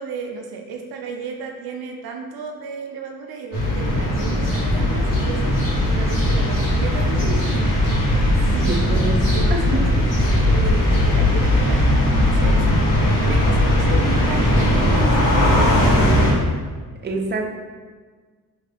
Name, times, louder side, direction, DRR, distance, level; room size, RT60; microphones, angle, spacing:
voice 1, 0.0-5.4 5.8-10.0 10.5-16.3, right 5 dB, 85° right, 2 dB, 0.5 m, -33 dB
sound 1, 3.5-16.3, left 1 dB, 60° left, 1.4 m, -18 dB
voice 2, 8.6-9.8 17.0-17.5, right 3 dB, 30° right, 1 dB, 0.6 m, -26 dB
3.3 x 2.8 x 3.5 m, 1.5 s
cardioid pair, 75°, 36 cm